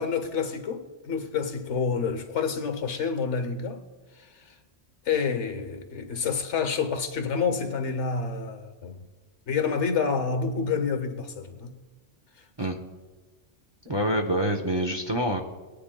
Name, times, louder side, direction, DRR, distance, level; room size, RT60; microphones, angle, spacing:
voice 1, 0.0-3.8 4.2-4.5 5.0-9.1 9.5-11.7 12.6-12.7, left 5 dB, 70° left, 1.2 m, -28 dB
voice 2, 13.9-15.4, right 1 dB, 25° right, 0.7 m, -26 dB
20.0 x 10.5 x 2.2 m
omnidirectional pair, 1.3 m